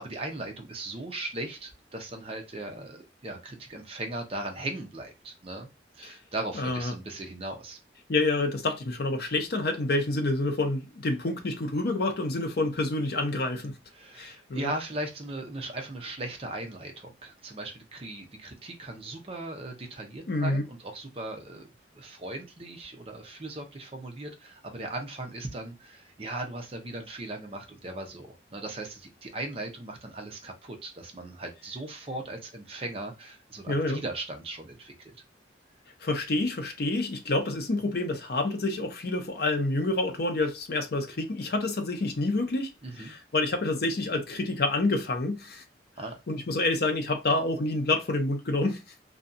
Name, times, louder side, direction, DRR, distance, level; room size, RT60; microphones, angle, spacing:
voice 1, 0.0-5.7 5.9-7.8 13.9-21.7 21.9-35.1 42.8-43.1 46.0-46.1, right 2 dB, 30° right, 0.5 m, -38 dB
voice 2, 6.6-6.9 8.1-13.7 14.2-14.7 20.3-20.6 33.7-34.0 36.0-42.7 43.0-45.6 46.3-48.8, left 2 dB, 55° left, 0.6 m, -28 dB
2.6 x 2.2 x 2.5 m
head